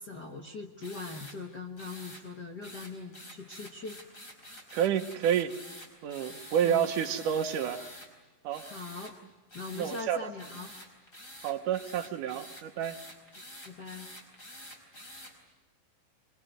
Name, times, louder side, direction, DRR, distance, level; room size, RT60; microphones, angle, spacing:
voice 1, 0.0-4.0 6.6-6.8 8.6-9.1 9.5-10.7 13.6-14.1, left 3 dB, 45° left, 1 dB, 1.4 m, -41 dB
sound 1, 0.8-1.4 1.8-2.2 2.6-8.1 8.5-9.1 9.5-10.1 10.4-15.3, left 1 dB, 20° left, 4.9 m, -48 dB
voice 2, 4.7-5.5 6.0-7.9 8.4-8.6 9.7-10.2 11.4-13.0, right 9 dB, 70° right, 7 dB, 2.5 m, -29 dB
24.5 x 23.0 x 9.3 m, 1.1 s
omnidirectional pair, 3.9 m